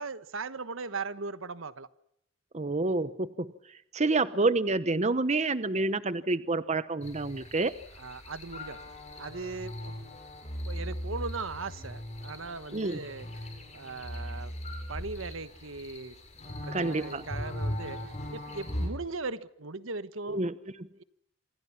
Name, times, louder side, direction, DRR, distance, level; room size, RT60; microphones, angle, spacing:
voice 1, 0.0-1.9 8.0-8.8 9.2-10.0 10.6-13.3 13.7-14.5 14.9-16.2 16.4-18.0 18.3-20.4 21.0-21.1, right 4 dB, 80° right, 1.3 m, -38 dB
voice 2, 2.5-3.5 3.9-7.7 12.7-13.0 16.7-17.2 20.3-20.9, right 3 dB, 35° right, 1.0 m, -28 dB
sound 1, 7.0-18.9, left 1 dB, 35° left, 7.6 m, -39 dB
28.0 x 26.0 x 5.9 m
head